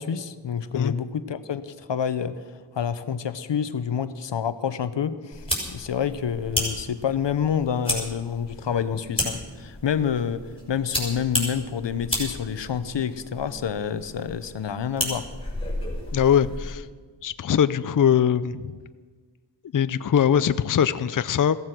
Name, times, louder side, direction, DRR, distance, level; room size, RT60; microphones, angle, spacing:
voice 1, 0.0-15.3, left 7 dB, 80° left, 13 dB, 0.9 m, -28 dB
sound 1, 5.3-16.7, left 1 dB, 10° left, 6.0 m, -33 dB
voice 2, 16.1-16.9 17.2-18.7 19.7-21.6, left 8 dB, 50° left, 13 dB, 0.5 m, -21 dB
16.0 x 14.5 x 6.0 m, 1.5 s
wide cardioid pair, 65°, 43 cm